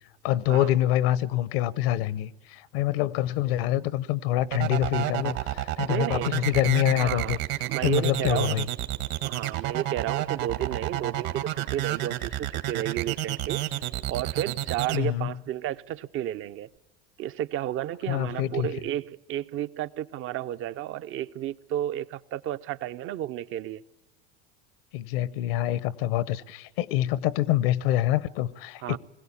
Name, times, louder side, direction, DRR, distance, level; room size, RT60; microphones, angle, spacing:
voice 1, 0.2-7.4 7.8-8.6 14.9-15.3 18.1-18.7 24.9-29.0, left 13 dB, 70° left, 0.8 m, -26 dB
sound 1, 4.5-15.0, right 14 dB, 65° right, 1.9 m, -29 dB
voice 2, 5.9-6.5 6.9-8.7 9.2-13.7 14.1-16.7 17.2-23.8 28.8-29.0, right 12 dB, 45° right, 0.6 m, -32 dB
21.0 x 16.5 x 8.6 m
hypercardioid pair, 95°, 30 cm